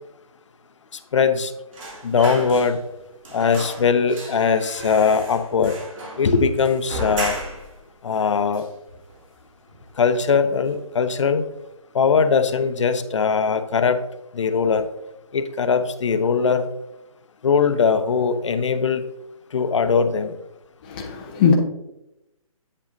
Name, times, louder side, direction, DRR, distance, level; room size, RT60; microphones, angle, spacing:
voice 1, 1.1-1.5 2.0-2.8 3.3-5.7 6.2-7.4 8.0-8.7 10.0-11.4 11.9-14.0 14.3-14.9 15.3-16.7 17.4-19.0 19.5-20.3, left 5 dB, 55° left, 9 dB, 0.7 m, -20 dB
sound 1, 1.7-3.0 3.2-7.8 8.1-8.2 8.5-9.4 9.7-9.9 10.2-10.9 11.2-11.4, right 1 dB, 60° right, 3.0 m, -35 dB
voice 2, 20.9-21.5, left 6 dB, 15° left, 0 dB, 0.5 m, -19 dB
8.5 x 7.5 x 2.6 m, 0.90 s
hypercardioid pair, 160°, 19 cm